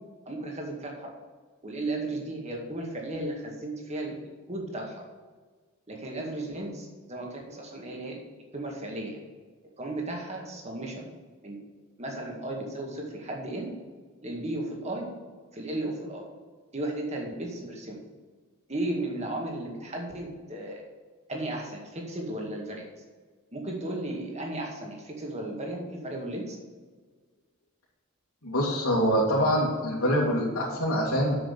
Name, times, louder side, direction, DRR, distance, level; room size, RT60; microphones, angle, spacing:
voice 1, 0.3-1.1 1.6-4.2 4.5-5.0 5.9-8.2 8.5-9.1 9.8-11.0 11.4-11.6 12.0-13.7 14.2-15.1 15.5-16.2 16.7-18.0 18.7-20.8 21.3-22.8 23.5-26.6, right 1 dB, 30° right, 0 dB, 2.0 m, -35 dB
voice 2, 28.4-31.4, equal, 90° left, -7 dB, 2.4 m, -25 dB
7.7 x 6.6 x 6.7 m, 1.5 s
head